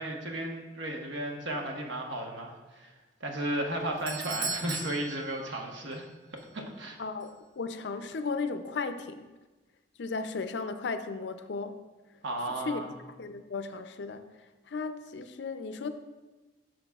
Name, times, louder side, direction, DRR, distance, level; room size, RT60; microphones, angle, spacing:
voice 1, 0.0-2.9 3.2-6.0 6.5-7.0 12.2-12.9, right 1 dB, 85° right, 1 dB, 1.1 m, -34 dB
Doorbell, 3.6-6.1 6.4-6.5 7.2-7.3, right 3 dB, 50° right, 0.5 m, -38 dB
voice 2, 7.0-9.3 10.0-11.8 12.6-12.8 13.2-14.2 14.7-15.9, left 4 dB, 75° left, 9 dB, 0.5 m, -35 dB
11.0 x 6.4 x 2.4 m, 1.2 s
head